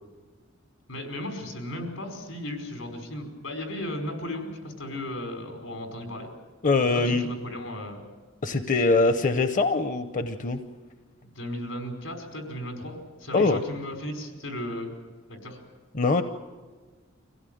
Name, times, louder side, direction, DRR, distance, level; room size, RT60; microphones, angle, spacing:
voice 1, 0.9-6.3 6.9-8.0 11.2-14.9 15.3-15.6, left 1 dB, 85° left, 4 dB, 5.1 m, -35 dB
voice 2, 6.6-7.3 8.4-10.6 13.3-13.6 15.9-16.2, left 3 dB, 40° left, 9 dB, 0.8 m, -23 dB
25.0 x 16.5 x 9.3 m, 1.4 s
head